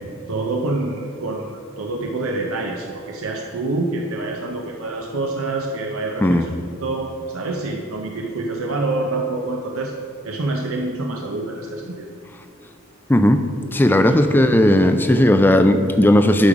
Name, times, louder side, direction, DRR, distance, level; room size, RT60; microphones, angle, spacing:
voice 1, 0.3-6.4 6.8-10.0 10.2-12.1 14.0-14.1, right 2 dB, 75° right, 1 dB, 0.7 m, -26 dB
voice 2, 6.2-6.5 13.1-13.4 13.7-16.5, left 1 dB, 10° left, 8 dB, 0.4 m, -15 dB
11.5 x 5.4 x 4.9 m, 2.5 s
head